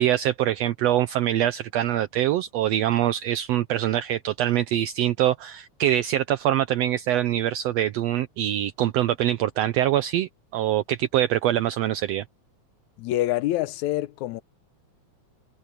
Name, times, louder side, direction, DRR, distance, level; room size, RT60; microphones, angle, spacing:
voice 1, 0.0-12.2, right 12 dB, 75° right, 1.7 m, -24 dB
voice 2, 13.0-14.4, left 15 dB, 80° left, 2.1 m, -26 dB
omnidirectional pair, 3.3 m